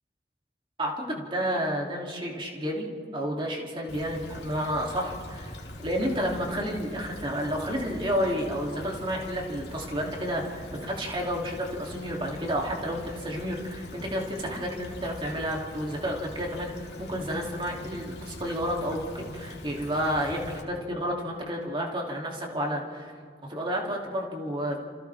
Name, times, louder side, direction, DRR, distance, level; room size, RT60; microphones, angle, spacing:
voice 1, 0.8-2.9 3.1-23.1 23.5-24.8, equal, 30° right, -1 dB, 2.9 m, -31 dB
Stream / Trickle dribble, 3.9-20.6, left 1 dB, 65° left, 2.5 m, -43 dB
28.0 x 28.0 x 3.6 m, 2.2 s
head